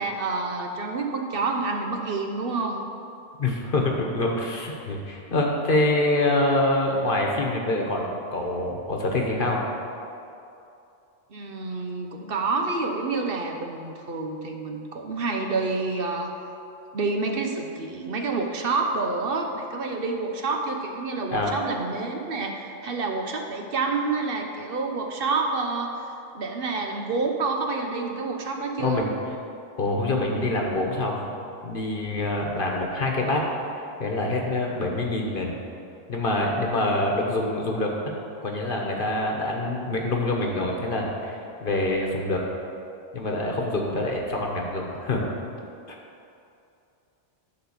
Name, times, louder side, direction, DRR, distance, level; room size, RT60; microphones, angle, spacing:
voice 1, 0.0-2.8 11.3-16.3 16.9-26.0 26.3-29.1, right 3 dB, 65° right, 2 dB, 1.0 m, -28 dB
voice 2, 3.4-9.6 21.3-21.5 28.8-29.1 29.8-31.3 31.6-33.4 34.0-35.5 36.1-38.1 38.4-42.4 43.1-45.3, left 2 dB, 60° left, 0 dB, 1.2 m, -25 dB
12.0 x 3.9 x 7.2 m, 2.6 s
omnidirectional pair, 1.1 m